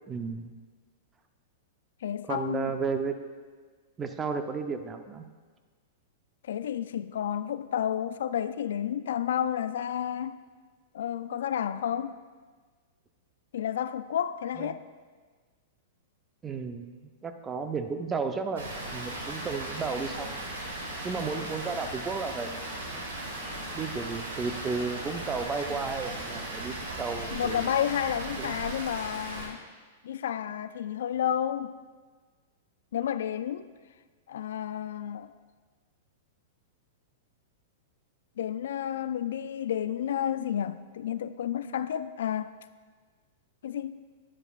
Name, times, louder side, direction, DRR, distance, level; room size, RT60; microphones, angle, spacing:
voice 1, 0.1-0.5 2.3-3.1 4.0-5.3 14.6-14.7 16.4-16.9 17.2-20.5 21.0-22.9 23.7-27.8 28.4-28.5, right 5 dB, 20° right, 0.7 m, -33 dB
voice 2, 2.0-2.7 6.5-10.4 10.9-12.2 13.5-14.8 27.3-29.6 30.0-31.8 32.9-33.7 34.3-35.3 38.4-42.5 43.6-44.0, left 9 dB, 70° left, 0.3 m, -31 dB
Water, 18.6-29.5, right 1 dB, 75° right, 2.5 m, -37 dB
11.0 x 10.0 x 2.5 m
hypercardioid pair, 110°, 0 cm